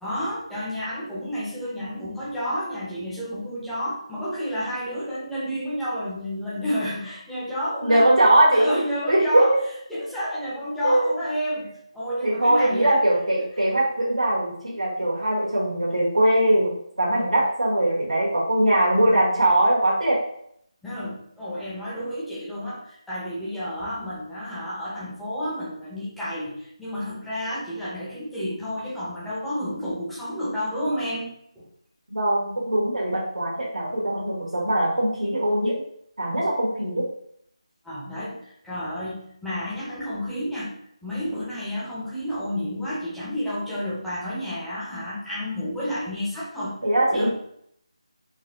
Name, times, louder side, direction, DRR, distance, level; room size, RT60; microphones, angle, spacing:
voice 1, 0.0-8.3 8.5-9.5 9.9-13.0 20.8-31.6 37.8-38.4 38.6-40.7 41.0-46.7 47.1-47.5, equal, ahead, -10 dB, 0.6 m, -30 dB
voice 2, 7.8-8.7 9.1-9.6 10.8-11.1 12.2-20.2 32.1-35.7 36.2-37.0 46.8-47.3, right 1 dB, 90° right, -6 dB, 1.4 m, -21 dB
4.0 x 2.2 x 2.7 m, 0.70 s
figure-of-eight pair, 165°, 3 cm